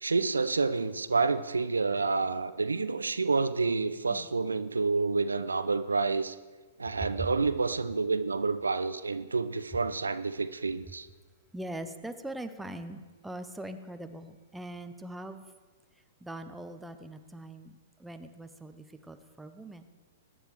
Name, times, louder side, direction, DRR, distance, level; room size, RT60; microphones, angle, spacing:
voice 1, 0.0-6.4 6.8-11.1, right 4 dB, 75° right, 12 dB, 0.5 m, -29 dB
voice 2, 11.5-15.5 16.2-17.7 18.0-19.8, right 1 dB, 5° right, 8 dB, 0.7 m, -41 dB
21.0 x 9.8 x 3.2 m, 1.4 s
figure-of-eight pair, 110°, 0 cm